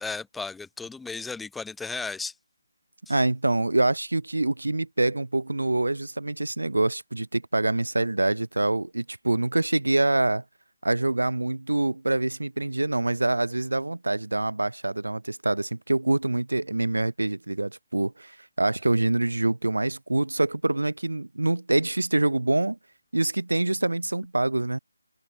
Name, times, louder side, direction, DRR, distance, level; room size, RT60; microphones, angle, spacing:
voice 1, 0.0-2.3, left 4 dB, 5° left, 0.7 m, -34 dB
voice 2, 3.1-10.4 10.8-22.8 23.1-24.8, right 2 dB, 70° right, 0.4 m, -25 dB
figure-of-eight pair, 150°, 0 cm